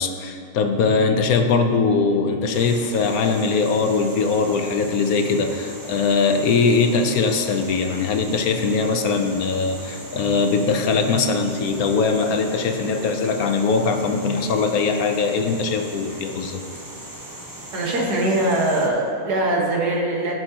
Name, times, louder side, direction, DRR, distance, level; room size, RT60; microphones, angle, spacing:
voice 1, 0.0-16.6, left 4 dB, 70° left, 6 dB, 1.1 m, -21 dB
sound 1, 2.5-18.9, right 1 dB, 20° right, 0.6 m, -39 dB
voice 2, 17.7-20.3, right 1 dB, 80° right, -1 dB, 1.9 m, -22 dB
16.0 x 6.3 x 2.9 m, 2.3 s
omnidirectional pair, 1.7 m